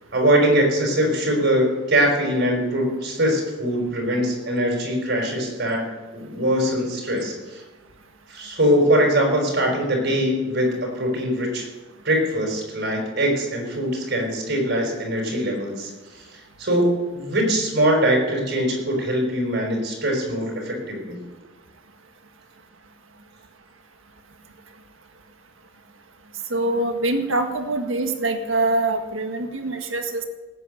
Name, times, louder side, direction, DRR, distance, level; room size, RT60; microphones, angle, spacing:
voice 1, 0.1-5.9 6.1-7.6 8.3-11.7 12.0-21.2, equal, 55° right, 1 dB, 5.1 m, -22 dB
voice 2, 26.5-30.2, right 2 dB, 80° right, 5 dB, 1.7 m, -24 dB
18.5 x 9.2 x 6.7 m, 1.2 s
head